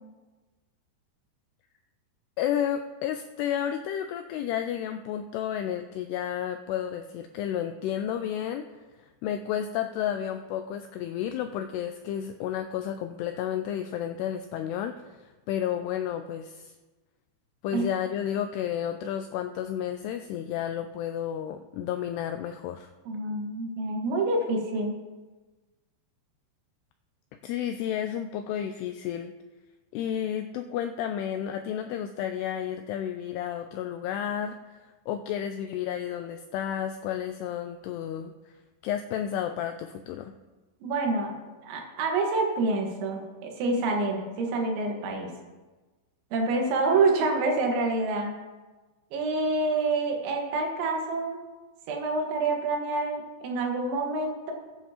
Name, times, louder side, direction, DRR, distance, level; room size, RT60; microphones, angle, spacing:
voice 1, 2.4-8.7 9.0-16.7 17.6-22.9 27.4-29.3 29.9-34.8 35.1-38.3 38.8-40.3, left 10 dB, 90° left, 7 dB, 2.3 m, -31 dB
voice 2, 23.1-25.0 40.8-45.3 46.3-48.3 49.1-51.4 51.9-54.5, right 3 dB, 80° right, 1 dB, 3.9 m, -27 dB
19.5 x 9.2 x 2.9 m, 1.2 s
omnidirectional pair, 5.3 m